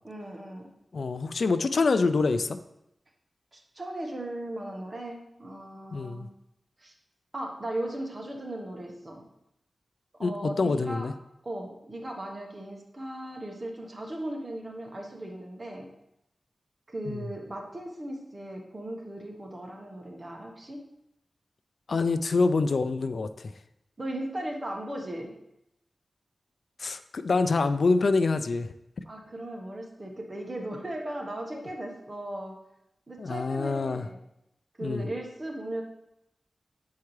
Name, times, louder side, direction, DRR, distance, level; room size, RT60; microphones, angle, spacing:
voice 1, 0.0-0.7 3.5-6.3 6.8-6.9 7.3-9.2 10.2-11.1 11.4-15.9 16.9-20.8 24.0-25.3 29.1-32.5 33.1-34.2 34.8-35.8, right 1 dB, 35° right, 1 dB, 1.3 m, -37 dB
voice 2, 0.9-2.6 5.9-6.3 10.2-11.1 17.1-17.2 21.9-23.3 26.8-28.7 31.5-31.6 33.2-34.1 34.8-35.1, left 3 dB, 70° left, 11 dB, 0.4 m, -26 dB
8.4 x 4.6 x 3.2 m, 0.83 s
cardioid pair, 60°, 0 cm